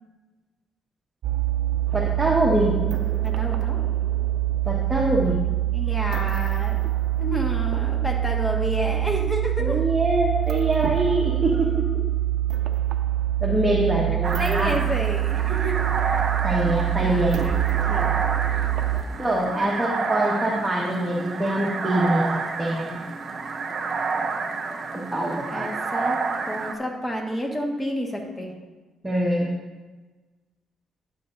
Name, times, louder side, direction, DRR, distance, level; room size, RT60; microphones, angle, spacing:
sound 1, 1.2-19.0, right 14 dB, 70° right, 0.5 m, -25 dB
voice 1, 1.9-2.7 4.6-5.4 6.0-6.1 9.6-11.9 13.4-14.8 16.4-17.4 18.9-23.0 24.7-24.8 25.1-25.7 29.0-29.5, right 1 dB, 15° right, -4 dB, 1.5 m, -24 dB
voice 2, 3.2-3.8 5.7-6.8 7.2-9.8 13.7-14.0 14.3-15.8 16.6-18.4 25.5-26.2 26.5-28.5, equal, 15° left, 0 dB, 1.5 m, -30 dB
sound 2, 14.2-26.7, right 4 dB, 50° right, 0.9 m, -30 dB
11.5 x 7.6 x 2.6 m, 1.3 s
cardioid pair, 90°, 0 cm